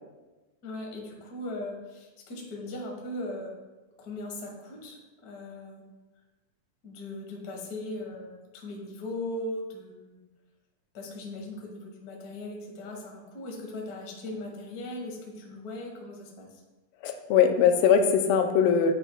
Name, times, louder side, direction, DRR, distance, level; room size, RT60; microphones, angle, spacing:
voice 1, 0.6-3.5 4.0-5.8 6.8-10.2 10.9-16.5, left 1 dB, 50° left, 0 dB, 1.1 m, -38 dB
voice 2, 17.0-18.9, left 7 dB, 90° left, 6 dB, 2.3 m, -21 dB
10.0 x 8.0 x 2.3 m, 1.2 s
omnidirectional pair, 3.9 m